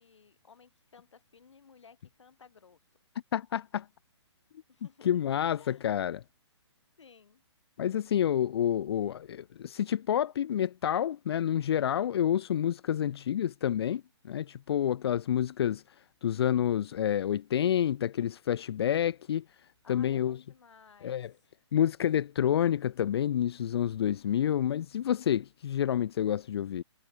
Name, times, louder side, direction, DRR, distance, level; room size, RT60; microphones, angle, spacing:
voice 1, 0.0-2.8 4.7-5.2 5.5-5.9 7.0-7.4 19.8-21.2, left 6 dB, 75° left, 5.9 m, -57 dB
voice 2, 3.3-3.9 5.0-6.2 7.8-15.8 16.2-19.4 19.9-20.4 21.0-21.3 21.7-26.8, left 10 dB, 60° left, 0.7 m, -28 dB
hypercardioid pair, 135°, 15 cm